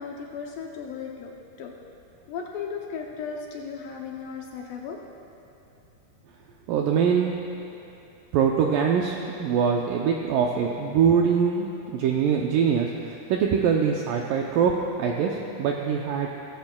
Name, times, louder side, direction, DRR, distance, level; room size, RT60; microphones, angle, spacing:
voice 1, 0.0-1.7 2.3-5.0, left 6 dB, 75° left, 0 dB, 2.1 m, -36 dB
voice 2, 6.7-7.3 8.3-16.3, right 7 dB, 85° right, 0 dB, 1.9 m, -23 dB
17.0 x 15.0 x 2.2 m, 2.8 s
omnidirectional pair, 4.5 m